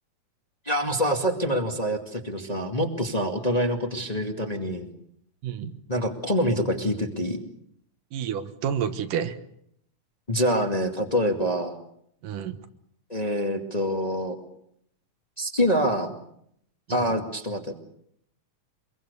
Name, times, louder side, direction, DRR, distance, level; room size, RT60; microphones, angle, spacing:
voice 1, 0.6-4.9 5.9-7.4 10.3-11.7 13.1-14.3 15.4-16.1 16.9-17.7, equal, 15° left, 3 dB, 1.7 m, -26 dB
voice 2, 5.4-5.8 8.1-9.4 12.2-12.6 16.9-17.0, right 8 dB, 85° right, 9 dB, 2.9 m, -29 dB
25.5 x 22.5 x 6.8 m, 0.72 s
omnidirectional pair, 3.6 m